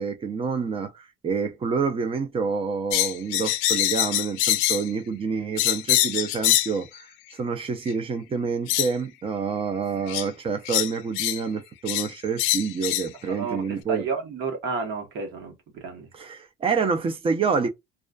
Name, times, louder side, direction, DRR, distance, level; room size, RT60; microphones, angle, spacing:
voice 1, 0.0-14.0 16.1-17.7, right 5 dB, 25° right, 0.5 m, -28 dB
sound 1, 2.9-4.9 5.6-6.8 7.9-8.0 8.7-8.9 10.1-10.3 10.6-11.4 11.9-12.1 12.4-13.1, left 15 dB, 85° left, 0.4 m, -24 dB
voice 2, 13.3-16.1, right 4 dB, 65° right, 1.1 m, -31 dB
2.4 x 2.3 x 2.2 m
cardioid pair, 120°, 20 cm